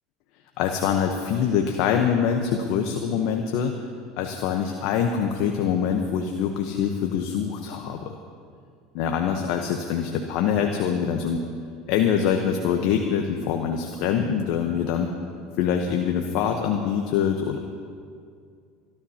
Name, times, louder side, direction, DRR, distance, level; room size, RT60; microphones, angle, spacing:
voice 1, 0.6-3.7 4.2-8.1 8.9-11.4 11.9-15.1 15.6-17.6, left 7 dB, 65° left, 4 dB, 1.0 m, -24 dB
27.0 x 12.5 x 2.9 m, 2.2 s
hypercardioid pair, 90°, 0 cm